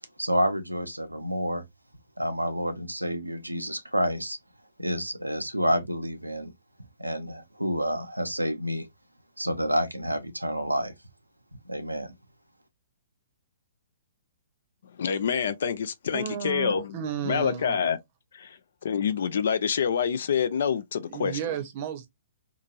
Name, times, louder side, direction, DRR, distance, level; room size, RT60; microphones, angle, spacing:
voice 1, 0.2-1.6 2.2-4.4 4.8-6.5 7.0-8.9 9.4-10.9 11.7-12.1, equal, 90° right, 0.5 m, -29 dB
voice 2, 15.0-17.0 17.2-18.0 18.3-21.4, left 7 dB, 55° left, 0.4 m, -27 dB
voice 3, 16.1-17.8 21.1-22.1, right 9 dB, 40° right, 0.7 m, -33 dB
2.8 x 2.5 x 2.3 m
figure-of-eight pair, 120°, 0 cm